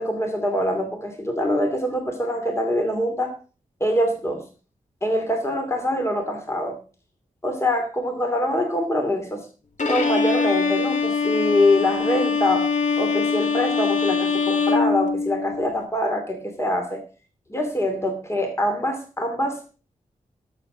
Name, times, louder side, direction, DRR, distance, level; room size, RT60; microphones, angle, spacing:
voice 1, 0.0-3.3 3.8-4.4 5.0-6.8 7.4-9.5 9.9-12.7 13.0-17.0 17.5-19.6, left 1 dB, 20° left, 4 dB, 2.6 m, -24 dB
Bowed string instrument, 9.8-15.7, left 5 dB, 65° left, 2.1 m, -23 dB
13.0 x 7.2 x 5.0 m, 0.36 s
cardioid pair, 60°, 14 cm